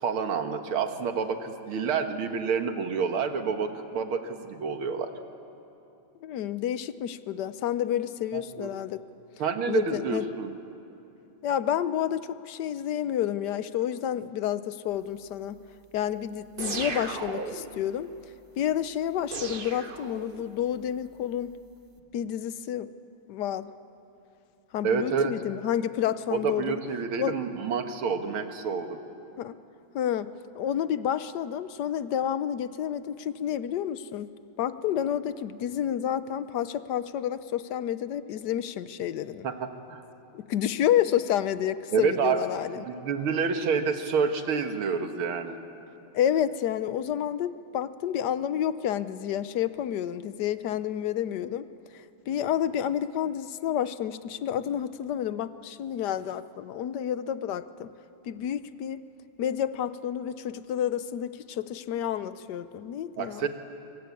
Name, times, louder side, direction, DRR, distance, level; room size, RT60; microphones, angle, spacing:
voice 1, 0.0-5.1 8.3-8.7 9.4-10.5 24.8-25.3 26.3-29.0 39.4-40.1 41.9-42.4 42.8-45.6 63.2-63.5, right 6 dB, 75° right, 7 dB, 2.3 m, -28 dB
voice 2, 6.2-9.0 9.7-10.2 11.4-15.6 15.9-18.1 18.6-21.5 22.1-22.9 23.3-23.7 24.7-26.8 27.2-27.3 29.4-29.6 29.9-39.5 40.3-42.8 46.1-51.7 52.3-57.9 58.2-59.0 59.4-63.5, left 10 dB, 65° left, 14 dB, 1.1 m, -29 dB
sound 1, 16.6-17.8 19.3-20.6, right 4 dB, 35° right, 1.0 m, -35 dB
26.0 x 24.0 x 8.5 m, 2.8 s
omnidirectional pair, 2.4 m